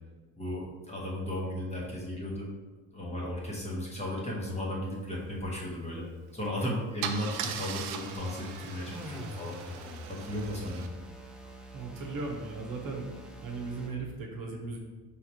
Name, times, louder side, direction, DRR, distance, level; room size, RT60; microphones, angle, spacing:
voice 1, 0.4-2.5 2.9-6.0 6.3-9.8 10.1-10.8, left 1 dB, 15° left, -4 dB, 1.2 m, -35 dB
Car / Engine starting / Idling, 6.3-6.5 7.0-10.9, right 8 dB, 75° right, 0.6 m, -39 dB
sound 1, 7.4-14.0, left 1 dB, ahead, 0.6 m, -45 dB
voice 2, 11.7-13.1 13.4-14.8, right 3 dB, 50° right, -1 dB, 1.1 m, -37 dB
4.8 x 3.5 x 2.9 m, 1.4 s
supercardioid pair, 95°, 45 cm